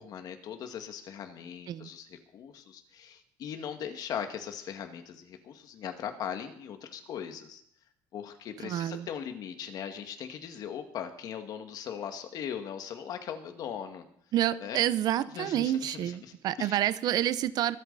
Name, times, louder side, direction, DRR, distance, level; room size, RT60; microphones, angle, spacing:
voice 1, 0.0-7.6 8.1-14.0 14.6-14.8 15.3-16.8, left 8 dB, 60° left, 2.0 m, -39 dB
voice 2, 8.6-9.1 14.3-17.8, right 12 dB, 60° right, 0.7 m, -28 dB
24.0 x 8.6 x 4.1 m
cardioid pair, 135°, 8 cm